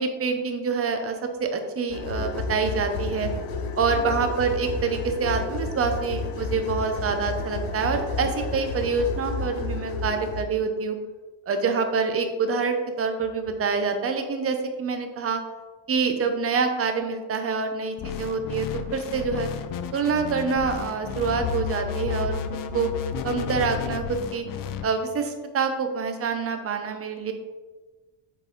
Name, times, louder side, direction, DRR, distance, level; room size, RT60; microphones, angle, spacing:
voice 1, 0.0-3.3 3.8-11.0 11.5-15.4 15.9-19.5 19.9-22.4 22.7-22.9 23.2-24.5 24.8-27.3, right 5 dB, 30° right, 6 dB, 0.7 m, -26 dB
sound 1, 1.9-10.4, left 3 dB, 80° left, 0.9 m, -31 dB
sound 2, 18.0-24.9, left 8 dB, 45° left, 0.4 m, -32 dB
7.5 x 4.0 x 3.8 m, 1.3 s
cardioid pair, 145°, 49 cm